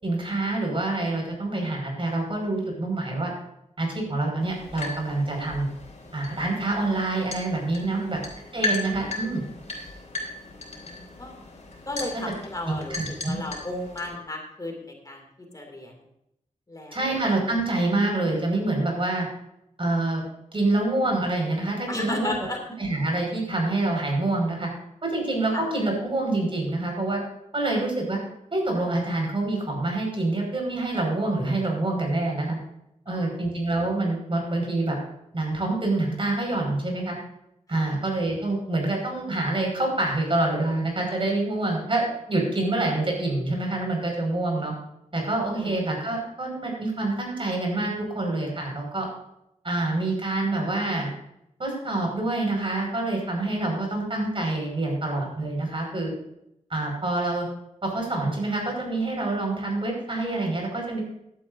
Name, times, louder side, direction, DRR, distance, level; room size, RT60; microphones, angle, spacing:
voice 1, 0.0-3.3 3.8-5.7 6.1-8.2 8.5-9.4 12.7-13.4 16.9-19.3 19.8-20.2 20.5-22.5 22.8-24.7 25.0-27.2 27.5-28.2 28.5-32.6 33.0-35.0 35.3-37.1 37.7-44.7 45.1-49.1 49.6-51.1 51.6-56.1 56.7-57.5 57.8-61.0, right 2 dB, 45° right, 0 dB, 5.2 m, -26 dB
sound 1, 4.4-14.1, left 2 dB, 60° left, 3.4 m, -36 dB
voice 2, 7.8-8.2 10.4-11.3 11.9-15.2 15.5-15.9 16.7-17.2 21.9-22.6 25.5-25.6 33.1-33.3 37.7-37.8 45.6-45.8, left 2 dB, 30° left, 1 dB, 2.4 m, -35 dB
16.0 x 11.5 x 2.6 m, 0.79 s
wide cardioid pair, 115°, 13 cm